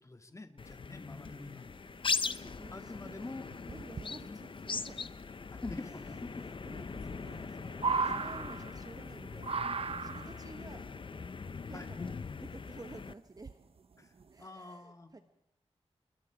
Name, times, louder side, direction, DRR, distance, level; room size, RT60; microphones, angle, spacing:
voice 1, 0.0-1.7 2.7-3.4 4.3-4.4 4.7-4.8 5.5-6.3 11.7-11.9 14.0-14.1 14.4-15.1, left 2 dB, 25° left, 7 dB, 1.9 m, -46 dB
sound 1, 0.6-13.1, left 4 dB, 50° left, 0.7 m, -40 dB
voice 2, 2.2-3.4 3.7-5.1 5.8-11.4 11.7-13.6 14.3-15.2, right 3 dB, 35° right, 8 dB, 1.1 m, -53 dB
sound 2, 2.4-2.5 2.8-3.1 3.5-4.1 5.6-5.7 5.9-6.0 6.6-6.7 6.9-9.1 9.4-10.5 11.4-12.1 12.8-12.9 13.4-13.8 14.2-14.4, right 4 dB, 60° right, 0.8 m, -36 dB
28.0 x 22.0 x 4.9 m, 0.83 s
wide cardioid pair, 120°, 11 cm